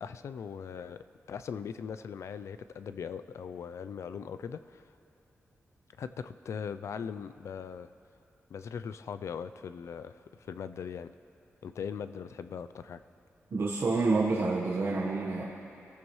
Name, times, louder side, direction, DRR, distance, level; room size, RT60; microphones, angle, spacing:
voice 1, 0.0-4.8 6.0-7.9 8.5-11.1 11.6-13.0, left 7 dB, 75° left, 12 dB, 0.5 m, -40 dB
voice 2, 13.5-15.4, right 3 dB, 60° right, -4 dB, 1.3 m, -28 dB
27.0 x 14.0 x 3.2 m, 2.8 s
wide cardioid pair, 165°, 5 cm